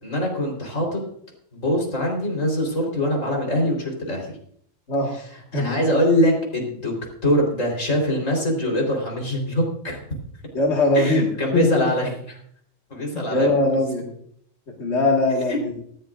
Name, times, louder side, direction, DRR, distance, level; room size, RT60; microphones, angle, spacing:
voice 1, 0.0-1.0 1.5-4.3 5.5-6.9 7.2-10.0 10.9-12.4 12.9-13.5 15.5-15.6, equal, 85° left, 0 dB, 4.5 m, -23 dB
voice 2, 4.9-5.3 5.5-5.7 10.5-11.3 11.5-11.7 13.1-14.1 14.7-15.7, left 2 dB, 60° left, -2 dB, 2.2 m, -21 dB
18.5 x 15.0 x 2.5 m, 0.65 s
omnidirectional pair, 1.3 m